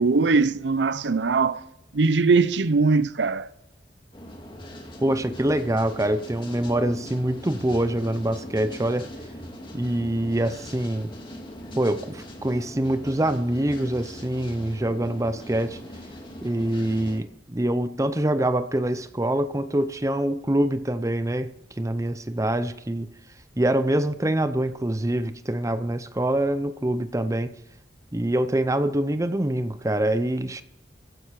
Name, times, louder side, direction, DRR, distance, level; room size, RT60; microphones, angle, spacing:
voice 1, 0.0-1.6 1.9-3.5, right 4 dB, 75° right, 0.6 m, -21 dB
sound 1, 4.1-17.2, left 1 dB, 25° left, 2.2 m, -41 dB
voice 2, 5.0-9.1 9.7-11.1 11.8-15.8 16.4-21.5 21.8-23.1 23.6-27.5 28.1-30.6, right 1 dB, 20° right, 0.6 m, -25 dB
15.5 x 10.5 x 4.7 m
head